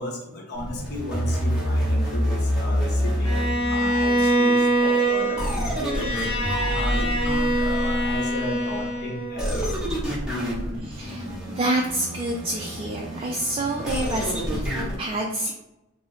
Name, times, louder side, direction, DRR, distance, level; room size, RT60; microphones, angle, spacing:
voice 1, 0.0-3.3 3.7-6.1 6.7-10.1 14.4-14.7, left 1 dB, 50° left, 0 dB, 0.8 m, -34 dB
sound 1, 0.5-4.3 5.4-8.4 9.4-15.0, equal, 5° right, 0.9 m, -27 dB
Bowed string instrument, 3.2-9.5, right 1 dB, 25° left, 1.0 m, -24 dB
voice 2, 10.8-15.5, right 1 dB, 25° right, 0 dB, 0.3 m, -28 dB
3.0 x 2.0 x 3.8 m, 0.91 s
head